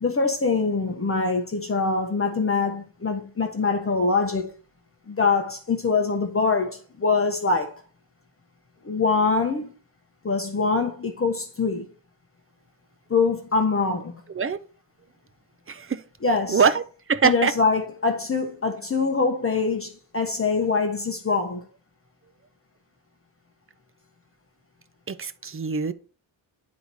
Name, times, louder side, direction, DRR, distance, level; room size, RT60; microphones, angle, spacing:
voice 1, 0.0-4.5 5.1-7.8 8.8-9.7 10.2-11.8 13.1-14.2 16.2-16.6 17.2-21.6, left 4 dB, 25° left, 1.1 m, -24 dB
voice 2, 15.7-16.0 16.5-16.8 17.1-17.5 25.1-25.9, right 6 dB, 25° right, 0.5 m, -23 dB
9.6 x 4.1 x 4.7 m
wide cardioid pair, 120°, 50 cm